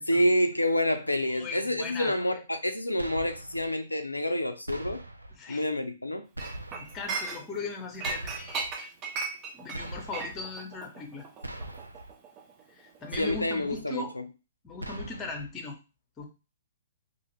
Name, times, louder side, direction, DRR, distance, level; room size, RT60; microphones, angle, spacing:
voice 1, 0.1-5.0 5.5-6.3 13.2-14.2, left 1 dB, 90° left, 0.3 m, -28 dB
voice 2, 1.3-2.1 5.3-5.7 6.7-8.9 9.5-11.3 12.7-14.1 14.6-15.8 16.2-16.3, left 4 dB, 20° left, 0.8 m, -39 dB
sound 1, 3.0-3.7 4.7-5.4 6.3-7.0 8.0-8.7 9.7-10.4 11.4-12.1 13.1-13.8 14.8-15.5, right 1 dB, 90° right, 0.4 m, -41 dB
Chink clink, 6.4-7.7 8.0-12.6 12.9-13.1, right 4 dB, 30° right, 0.5 m, -37 dB
2.5 x 2.3 x 3.0 m
figure-of-eight pair, 115°, 0 cm